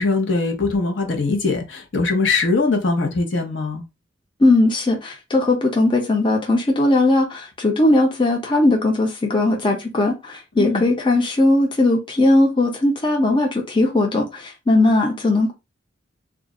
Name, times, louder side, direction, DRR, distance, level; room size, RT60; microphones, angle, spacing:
voice 1, 0.0-3.9 10.6-10.9, left 3 dB, 70° left, 0.8 m, -21 dB
voice 2, 4.4-15.5, left 2 dB, 25° left, 0.6 m, -18 dB
2.4 x 2.0 x 3.6 m
head